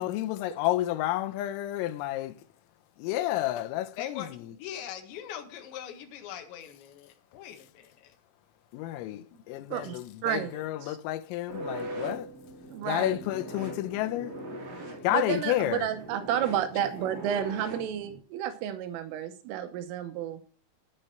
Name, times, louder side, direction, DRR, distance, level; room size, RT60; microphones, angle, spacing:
voice 1, 0.0-2.3 3.0-4.5 8.7-12.3 12.8-14.4 15.0-15.9, left 14 dB, 90° left, 3.6 m, -30 dB
voice 2, 4.0-8.1, left 10 dB, 70° left, 3.7 m, -42 dB
voice 3, 9.7-11.0 12.7-13.2 14.9-20.4, right 10 dB, 80° right, 3.4 m, -31 dB
sound 1, 11.5-18.2, right 1 dB, 40° right, 4.0 m, -41 dB
10.5 x 10.0 x 4.3 m
omnidirectional pair, 5.8 m